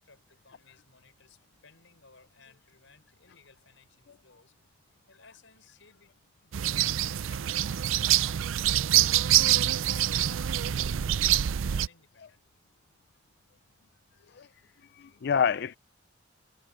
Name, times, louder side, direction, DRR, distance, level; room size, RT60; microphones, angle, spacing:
voice 1, 0.0-4.5 5.1-12.4 14.1-14.3, left 4 dB, 75° left, 6.1 m, -60 dB
sound 1, 6.5-11.9, right 12 dB, 85° right, 0.5 m, -25 dB
voice 2, 14.8-15.8, left 7 dB, 55° left, 0.4 m, -28 dB
head